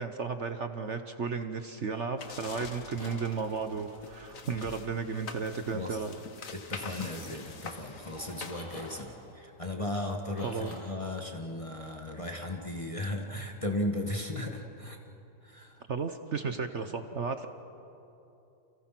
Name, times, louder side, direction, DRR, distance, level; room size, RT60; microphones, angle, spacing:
voice 1, 0.0-6.1 10.4-10.7 15.9-17.5, right 5 dB, 50° right, 8 dB, 1.1 m, -34 dB
sound 1, 1.7-4.7 6.7-10.8, equal, 70° left, 7.3 m, -50 dB
sound 2, 2.2-9.3, left 5 dB, 50° left, 1.6 m, -45 dB
voice 2, 6.5-15.0 15.4-15.8, left 1 dB, 20° left, 2 dB, 1.7 m, -36 dB
29.5 x 29.0 x 6.0 m, 2.9 s
omnidirectional pair, 1.9 m